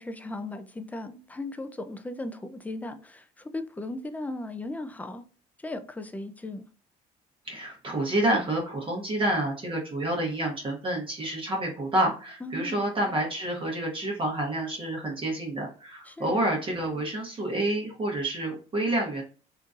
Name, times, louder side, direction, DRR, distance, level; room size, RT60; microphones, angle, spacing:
voice 1, 0.0-5.2 5.6-6.7 12.4-12.8 16.1-16.4, left 2 dB, 10° left, 0.4 m, -37 dB
voice 2, 7.4-19.2, right 1 dB, 30° right, 1.0 m, -28 dB
3.7 x 2.6 x 2.4 m
cardioid pair, 110°, 17 cm